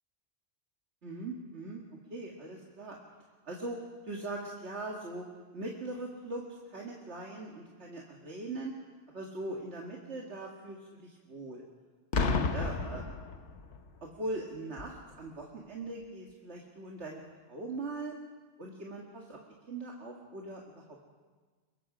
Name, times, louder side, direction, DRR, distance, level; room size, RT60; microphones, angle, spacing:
voice 1, 1.0-1.8 2.1-3.0 3.5-3.8 4.0-5.2 5.5-6.4 6.7-8.7 9.1-11.6 12.2-13.1 14.0-17.2 17.5-18.2 18.6-19.4 19.7-20.8, right 2 dB, 80° right, -2 dB, 2.2 m, -40 dB
Boom, 12.1-13.9 14.8-15.0, left 4 dB, 85° left, 1.5 m, -31 dB
24.5 x 22.0 x 5.0 m, 1.4 s
omnidirectional pair, 1.1 m